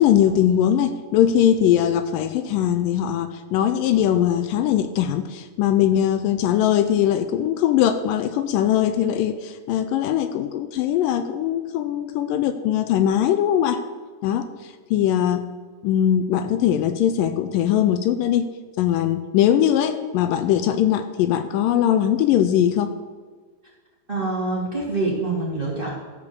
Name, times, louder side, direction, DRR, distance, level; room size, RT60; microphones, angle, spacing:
voice 1, 0.0-13.8 14.2-14.5 14.9-15.4 15.8-18.5 18.8-22.9, left 10 dB, 80° left, 10 dB, 2.2 m, -20 dB
voice 2, 24.1-25.9, right 3 dB, 20° right, -5 dB, 2.0 m, -25 dB
13.5 x 4.9 x 7.0 m, 1.5 s
omnidirectional pair, 4.0 m